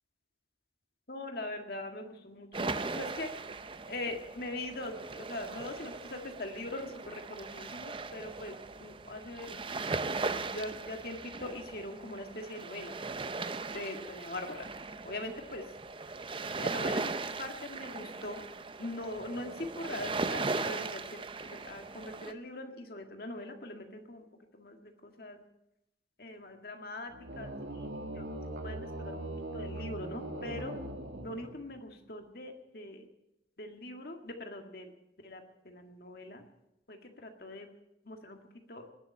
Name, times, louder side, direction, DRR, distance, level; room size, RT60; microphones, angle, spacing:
voice 1, 1.1-3.3 3.9-9.5 10.5-12.9 13.7-14.7 15.0-15.6 16.6-17.1 17.4-18.5 18.8-24.3 24.5-25.4 26.2-29.2 29.5-30.7 31.2-33.1 33.6-34.9 35.2-36.4 36.9-37.7 38.1-38.4 38.7-38.9, left 1 dB, 55° left, 4 dB, 1.9 m, -42 dB
sound 1, 2.5-22.3, right 3 dB, 25° right, 0.6 m, -38 dB
sound 2, 27.1-31.8, right 1 dB, 75° right, 2.1 m, -40 dB
20.0 x 7.3 x 9.7 m, 0.88 s
head